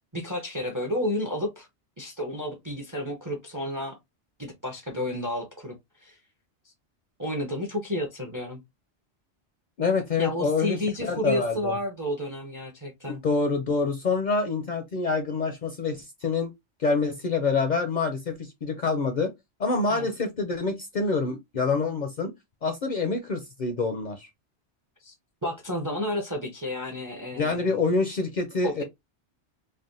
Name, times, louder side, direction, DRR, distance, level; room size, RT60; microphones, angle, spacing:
voice 1, 0.1-1.7 2.0-4.0 4.4-5.8 6.0-6.2 7.2-8.6 10.2-13.2 19.9-20.1 25.0-25.1 25.4-27.8 28.6-28.8, left 1 dB, 25° right, 0.4 m, -31 dB
voice 2, 9.8-11.8 13.0-16.5 16.8-19.3 19.6-22.3 22.6-24.3 27.4-28.8, left 4 dB, 55° left, 0.5 m, -26 dB
3.3 x 2.2 x 2.5 m
omnidirectional pair, 1.2 m